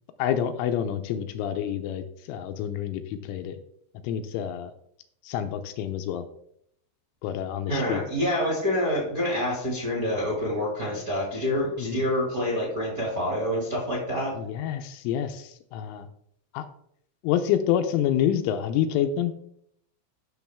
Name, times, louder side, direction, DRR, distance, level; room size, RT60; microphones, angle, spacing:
voice 1, 0.2-3.6 4.0-4.7 5.2-6.3 7.2-8.0 11.8-12.0 14.4-16.1 16.5-16.7 17.2-19.3, left 10 dB, 85° left, 8 dB, 3.1 m, -28 dB
voice 2, 7.7-14.3, left 1 dB, 30° right, -3 dB, 1.6 m, -27 dB
13.0 x 6.3 x 3.5 m, 0.70 s
omnidirectional pair, 5.8 m